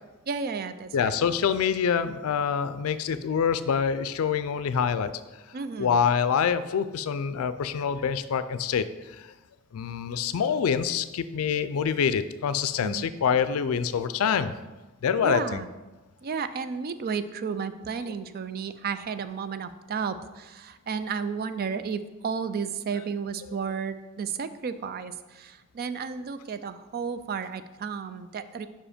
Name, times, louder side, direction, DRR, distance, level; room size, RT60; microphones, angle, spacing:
voice 1, 0.3-1.1 5.5-5.9 12.8-13.1 15.2-15.7 16.2-28.7, right 6 dB, 45° right, 12 dB, 0.4 m, -33 dB
voice 2, 0.9-5.2 5.8-9.3 9.7-14.5 15.0-15.6, left 7 dB, 80° left, 13 dB, 0.4 m, -26 dB
5.4 x 5.0 x 5.0 m, 1.1 s
head